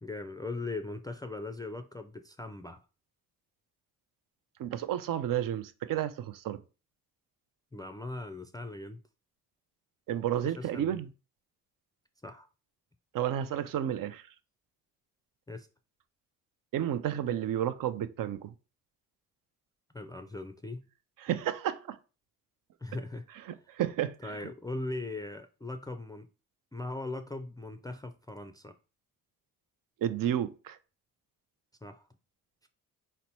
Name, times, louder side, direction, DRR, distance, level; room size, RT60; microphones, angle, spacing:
voice 1, 0.0-2.8 7.7-9.0 10.4-11.0 12.2-12.5 15.5-15.7 19.9-20.9 22.8-23.6 24.2-26.3 26.7-28.8 31.8-32.1 32.6-32.7, left 2 dB, 10° left, 0.4 m, -40 dB
voice 2, 4.6-6.6 10.1-11.1 13.1-14.3 16.7-18.5 21.2-22.0 23.7-24.3 30.0-30.8, right 10 dB, 55° right, 0.6 m, -31 dB
3.9 x 2.1 x 4.4 m
hypercardioid pair, 50°, 40 cm